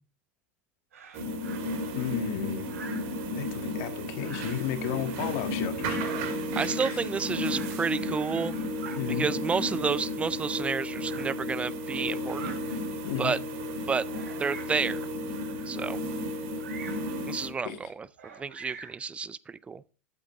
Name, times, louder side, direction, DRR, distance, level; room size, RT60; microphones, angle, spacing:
Bird vocalization bird call bird song, 0.9-1.6 2.6-3.1 4.1-4.7 5.7-6.3 7.4-7.8 8.3-9.0 9.9-10.0 11.0-11.3 12.2-12.6 13.2-13.3 14.1-14.8 16.6-17.1 18.2-19.0, right 5 dB, 80° right, 3.0 m, -45 dB
sound 1, 1.1-17.5, equal, 55° right, 2.1 m, -33 dB
voice 1, 1.9-2.7 3.3-6.0 6.9-7.0 8.9-9.3 13.0-13.4 17.6-17.8, left 10 dB, 55° left, 1.7 m, -33 dB
voice 2, 6.5-8.5 9.2-12.5 13.2-13.4 13.9-14.1 14.4-15.0 15.7-16.0 17.2-18.1 18.4-19.8, right 5 dB, 15° right, 0.4 m, -30 dB
8.7 x 7.8 x 3.6 m
hypercardioid pair, 105°, 8 cm